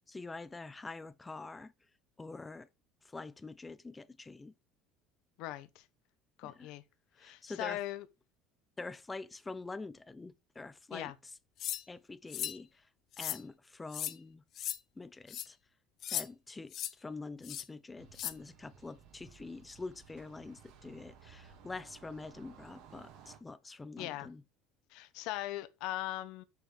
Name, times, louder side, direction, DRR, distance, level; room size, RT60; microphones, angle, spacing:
voice 1, 0.1-1.7 2.2-2.7 3.0-4.5 6.4-6.7 7.1-7.8 8.8-11.1 11.9-12.9 13.2-14.4 15.0-15.6 16.1-24.4, left 3 dB, 15° left, 0.6 m, -46 dB
voice 2, 5.4-5.8 6.4-6.8 7.2-8.1 10.9-11.1 24.0-24.3 24.9-26.4, left 15 dB, 70° left, 1.0 m, -39 dB
sound 1, 11.6-11.8 12.3-12.6 13.1-13.4 13.9-14.1 14.6-14.8 15.3-15.5 16.0-16.3 16.7-16.9 17.4-17.6 18.1-18.3, left 11 dB, 45° left, 0.7 m, -37 dB
sound 2, 18.0-23.4, right 7 dB, 65° right, 2.2 m, -57 dB
6.5 x 5.2 x 5.0 m
cardioid pair, 130°, 0 cm